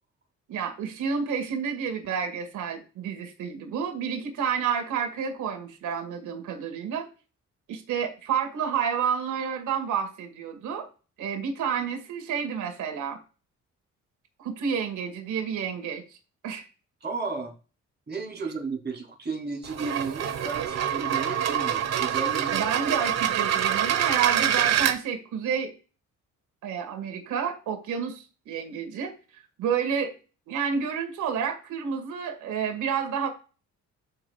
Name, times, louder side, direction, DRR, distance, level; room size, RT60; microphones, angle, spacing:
voice 1, 0.5-7.1 7.7-10.9 11.2-13.2 14.4-16.0 16.4-16.7 22.5-25.7 26.6-29.1 29.6-30.1 30.5-33.3, right 7 dB, 80° right, 5 dB, 1.9 m, -30 dB
voice 2, 17.0-17.5 18.1-22.6, right 4 dB, 35° right, 1 dB, 3.2 m, -33 dB
sound 1, 19.6-25.0, right 10 dB, 60° right, 1.1 m, -26 dB
13.5 x 5.0 x 2.3 m, 0.35 s
cardioid pair, 90°, 30 cm